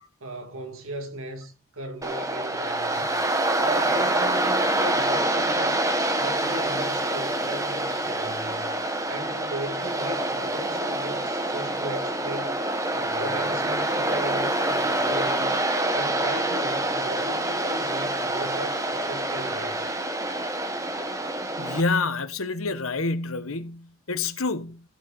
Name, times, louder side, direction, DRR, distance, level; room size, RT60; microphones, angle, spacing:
voice 1, 0.2-3.2 3.6-5.9 6.2-8.7 9.1-12.6 12.9-15.5 15.9-19.9, right 1 dB, 80° right, 2.2 m, -37 dB
Waves surf, 2.0-21.8, right 1 dB, 15° right, 1.1 m, -26 dB
voice 2, 21.6-24.8, left 3 dB, 85° left, 1.2 m, -28 dB
15.5 x 7.3 x 4.0 m
head